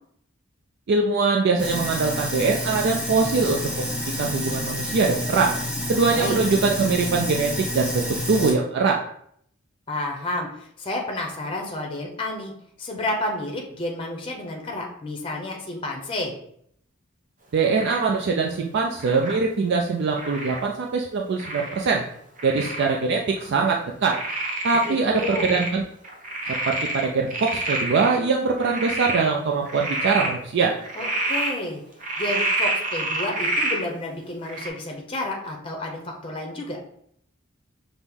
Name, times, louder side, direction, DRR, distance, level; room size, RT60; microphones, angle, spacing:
voice 1, 0.9-3.9 4.2-5.5 5.9-9.0 17.5-22.0 22.4-24.2 24.6-25.8 26.7-30.7, right 4 dB, 60° right, 1 dB, 0.4 m, -22 dB
Sink (filling or washing), 1.6-8.5, left 1 dB, 5° right, 0.9 m, -29 dB
voice 2, 9.9-12.5 12.8-16.3 24.8-25.5 31.0-31.8 32.2-36.8, left 1 dB, 25° left, 1 dB, 0.6 m, -30 dB
Frog, 17.8-18.1 19.0-19.4 20.2-20.6 21.4-21.9 22.4-22.9 23.4-23.5 24.1-25.7 26.0-28.1 28.6-29.2 29.7-30.3 30.8-31.5 32.0-33.8 34.5-34.7, right 2 dB, 40° right, 0.9 m, -28 dB
5.9 x 2.0 x 3.5 m, 0.68 s
head